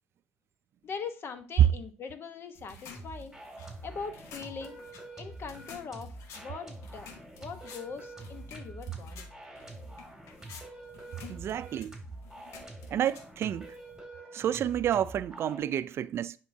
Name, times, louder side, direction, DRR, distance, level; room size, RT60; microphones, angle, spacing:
voice 1, 0.8-3.4 3.8-4.8 5.2-7.1 7.4-9.3, left 5 dB, 55° left, 1.0 m, -41 dB
sound 1, 2.5-14.0, left 5 dB, 85° left, 1.0 m, -52 dB
sound 2, 2.9-15.6, right 2 dB, 5° right, 2.4 m, -46 dB
voice 2, 11.3-11.9 12.9-13.7 14.3-16.4, right 10 dB, 65° right, 0.3 m, -30 dB
10.5 x 3.7 x 2.7 m
cardioid pair, 80°, 5 cm